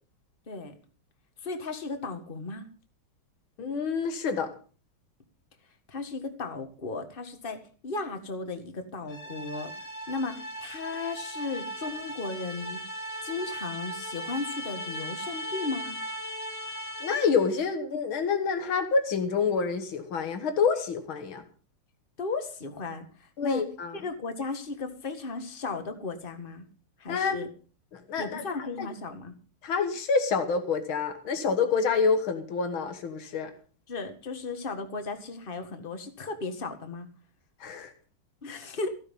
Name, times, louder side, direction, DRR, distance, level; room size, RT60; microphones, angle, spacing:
voice 1, 1.4-2.7 5.9-9.7 10.1-12.8 13.2-16.0 22.2-23.1 23.4-23.6 23.9-26.7 27.0-27.5 28.2-29.3 33.9-37.1 38.4-38.9, left 3 dB, 30° left, 6 dB, 1.8 m, -35 dB
voice 2, 3.6-4.5 17.0-21.4 23.4-24.0 27.1-27.5 27.9-28.9 29.6-33.5 37.6-37.9 38.4-38.6, left 5 dB, 85° left, 7 dB, 2.3 m, -27 dB
sound 1, 9.1-17.5, equal, 60° left, 4.0 m, -38 dB
15.5 x 10.5 x 5.4 m, 0.39 s
omnidirectional pair, 2.2 m